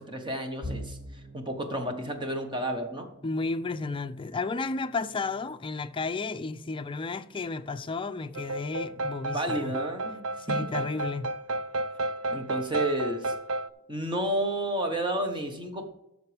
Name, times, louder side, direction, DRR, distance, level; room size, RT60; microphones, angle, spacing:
voice 1, 0.0-3.1 9.3-10.7 12.3-13.3 13.9-15.9, right 1 dB, 20° right, 1.2 m, -31 dB
sound 1, 0.6-12.5 12.9-13.1 13.5-13.7 14.6-15.0, equal, 40° right, 1.9 m, -48 dB
voice 2, 3.2-9.7 10.5-11.3, left 3 dB, 25° left, 0.5 m, -32 dB
sound 2, 8.3-13.7, right 2 dB, 75° right, 0.5 m, -32 dB
13.0 x 6.6 x 3.4 m
head